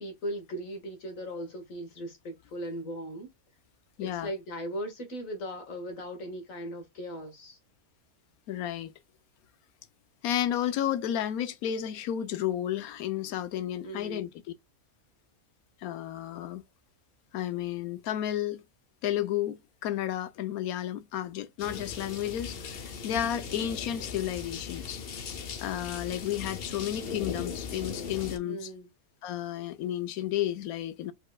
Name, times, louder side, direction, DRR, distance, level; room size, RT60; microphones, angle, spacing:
voice 1, 0.0-3.3 4.0-7.6 13.8-14.2 28.4-28.9, equal, 65° left, 2.0 m, -38 dB
voice 2, 4.0-4.3 8.5-8.9 10.2-14.3 15.8-16.6 17.3-18.6 19.0-25.0 25.6-28.7 29.2-31.1, left 11 dB, 90° left, 1.1 m, -32 dB
sound 1, 21.6-28.4, left 6 dB, 50° left, 0.9 m, -39 dB
5.0 x 4.2 x 2.3 m
omnidirectional pair, 1.5 m